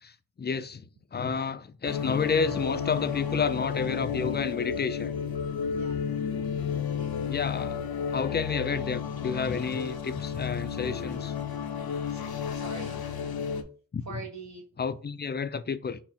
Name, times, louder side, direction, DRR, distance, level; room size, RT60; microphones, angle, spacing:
voice 1, 0.0-5.1 7.3-7.8 8.1-11.3 13.9-14.2 14.8-16.0, left 5 dB, 30° left, 0.4 m, -30 dB
sound 1, 1.8-13.6, left 7 dB, 80° left, 0.6 m, -32 dB
voice 2, 5.6-6.3 7.0-7.1 12.1-13.0 14.1-14.6, right 4 dB, 50° right, 0.8 m, -43 dB
6.0 x 2.1 x 4.1 m
cardioid pair, 45°, 36 cm